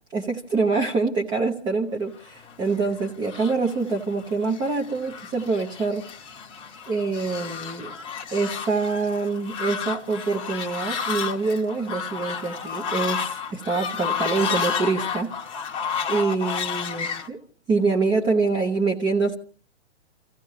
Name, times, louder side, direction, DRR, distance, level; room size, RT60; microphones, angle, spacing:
voice 1, 0.1-6.1 6.9-7.9 8.3-15.7 16.1-17.4 17.7-19.4, right 4 dB, 15° right, 0.9 m, -25 dB
Fowl, 2.5-17.3, left 7 dB, 15° left, 1.1 m, -31 dB
28.0 x 15.5 x 3.2 m
figure-of-eight pair, 120°, 35 cm